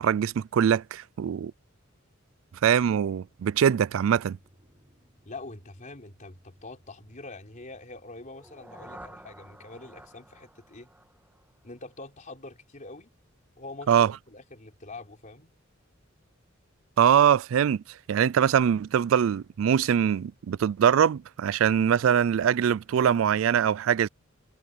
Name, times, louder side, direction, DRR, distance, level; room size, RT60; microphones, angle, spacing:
voice 1, 0.0-1.5 2.6-4.4 13.9-14.1 17.0-24.1, right 8 dB, 70° right, 0.3 m, -23 dB
Drum, 4.0-10.5, equal, 30° right, 7.1 m, -63 dB
voice 2, 5.3-10.9 11.6-13.1 13.6-15.5, left 2 dB, 40° left, 3.8 m, -44 dB
sound 1, 8.2-12.2, right 1 dB, 10° right, 2.0 m, -50 dB
head